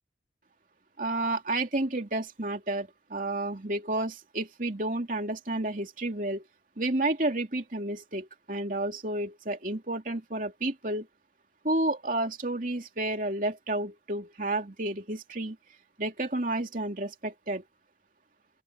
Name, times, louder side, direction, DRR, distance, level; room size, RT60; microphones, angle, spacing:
voice 1, 1.0-6.4 6.8-11.1 11.6-15.6 16.0-17.6, right 2 dB, 45° right, 2.9 m, -31 dB
open air
head